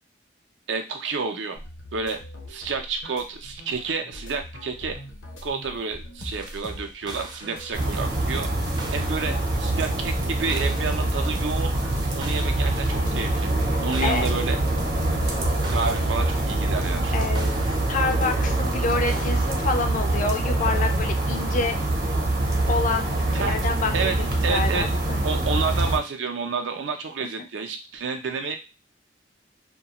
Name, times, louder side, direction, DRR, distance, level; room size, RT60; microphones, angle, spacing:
voice 1, 0.7-1.6 1.9-2.2 2.5-4.9 5.4-8.5 8.9-11.7 12.1-13.5 13.8-14.6 15.7-17.3 23.3-23.6 23.9-24.1 24.4-24.9 25.2-28.6, right 4 dB, 80° right, 5 dB, 0.5 m, -29 dB
sound 1, 1.5-17.2, left 1 dB, 85° left, 0.8 m, -41 dB
sound 2, 6.2-19.8, right 1 dB, 25° right, 0.4 m, -40 dB
sound 3, 7.7-26.0, right 2 dB, 55° right, 0.8 m, -24 dB
voice 2, 17.1-17.6 17.9-21.8 22.7-25.2 27.2-27.5, left 4 dB, 45° left, 6 dB, 0.3 m, -28 dB
2.3 x 2.2 x 2.8 m, 0.29 s
head